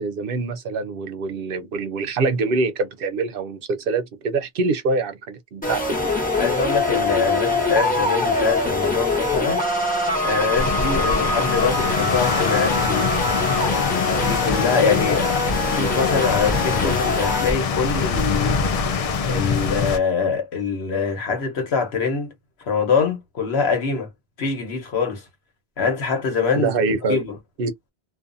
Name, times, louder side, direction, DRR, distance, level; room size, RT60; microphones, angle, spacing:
voice 1, 0.0-6.1 26.5-27.2 27.6-27.7, right 3 dB, 65° right, 0.7 m, -25 dB
sound 1, 5.6-17.5, left 2 dB, 10° left, 0.8 m, -23 dB
voice 2, 6.4-9.6 10.2-13.1 14.2-15.4 15.7-18.7 19.3-22.3 22.7-24.1 24.4-25.2 25.8-26.7 27.1-27.3, left 5 dB, 75° left, 1.2 m, -24 dB
sound 2, 10.6-20.0, left 5 dB, 55° left, 0.4 m, -24 dB
2.4 x 2.4 x 2.5 m
omnidirectional pair, 1.1 m